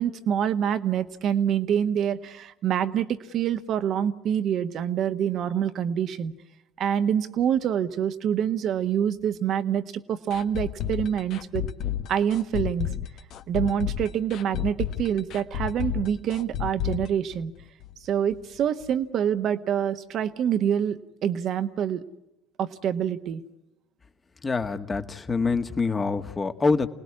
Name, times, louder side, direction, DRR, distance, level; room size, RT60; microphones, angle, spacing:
voice 1, 0.0-6.3 6.8-9.8 10.1-11.7 12.1-12.9 13.5-17.5 18.0-22.0 22.6-23.4, right 9 dB, 55° right, 10 dB, 1.4 m, -26 dB
sound 1, 10.3-18.0 18.3-18.4 18.8-18.9, left 11 dB, 60° left, 1.2 m, -31 dB
voice 2, 24.4-26.9, left 4 dB, 25° left, 8 dB, 1.8 m, -25 dB
29.0 x 19.5 x 9.8 m, 0.92 s
hypercardioid pair, 60°, 0 cm